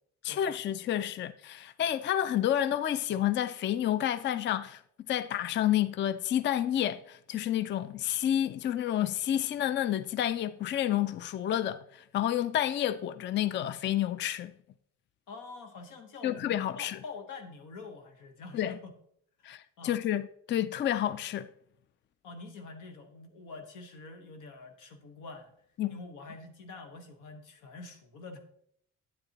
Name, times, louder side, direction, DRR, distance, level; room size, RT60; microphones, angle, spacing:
voice 1, 0.2-4.8 5.1-14.5 16.2-17.0 18.5-18.8 19.4-21.5 25.8-25.9, left 11 dB, 40° left, 0.4 m, -30 dB
voice 2, 15.3-18.9 19.4-20.0 22.2-25.5 25.9-28.4, left 3 dB, 90° left, 1.3 m, -46 dB
9.2 x 8.0 x 2.9 m
cardioid pair, 90°, 30 cm